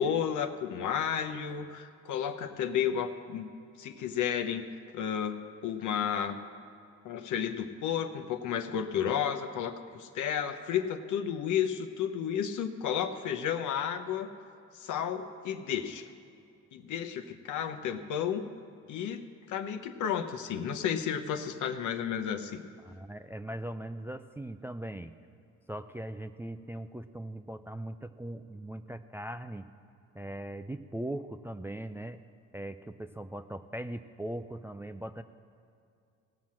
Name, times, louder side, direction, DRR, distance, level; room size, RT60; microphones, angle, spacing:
voice 1, 0.0-3.5 3.8-4.6 4.9-5.4 5.6-6.4 7.0-14.3 14.7-16.1 16.7-18.4 18.9-19.2 19.5-22.6, left 8 dB, 80° left, 8 dB, 0.8 m, -32 dB
voice 2, 22.8-25.1 25.7-29.7 30.1-32.2 32.5-35.2, right 1 dB, 10° right, 8 dB, 0.3 m, -40 dB
17.0 x 5.8 x 7.5 m, 2.5 s
cardioid pair, 90°, 30 cm